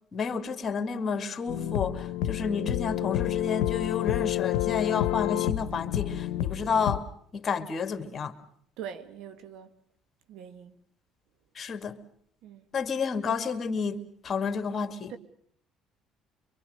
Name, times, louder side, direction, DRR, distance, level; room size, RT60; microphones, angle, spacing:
voice 1, 0.1-7.0 7.3-8.3 11.6-12.0 12.7-14.0 14.2-15.1, left 5 dB, 45° left, 2.3 m, -30 dB
sound 1, 1.5-7.0, left 13 dB, 90° left, 0.9 m, -29 dB
voice 2, 8.8-9.7 10.3-10.7 12.4-12.7 15.1-15.2, right 8 dB, 75° right, 1.7 m, -42 dB
24.5 x 24.0 x 6.6 m
supercardioid pair, 75°, 0 cm